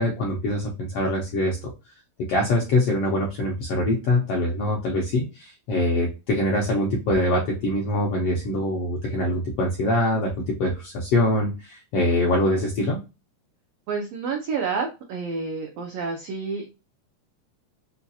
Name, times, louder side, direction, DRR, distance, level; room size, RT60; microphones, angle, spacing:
voice 1, 0.0-1.6 2.3-13.0, left 1 dB, 80° left, -1 dB, 1.4 m, -24 dB
voice 2, 13.9-16.7, right 5 dB, 85° right, 2 dB, 1.4 m, -29 dB
5.6 x 2.4 x 2.6 m, 0.29 s
omnidirectional pair, 3.8 m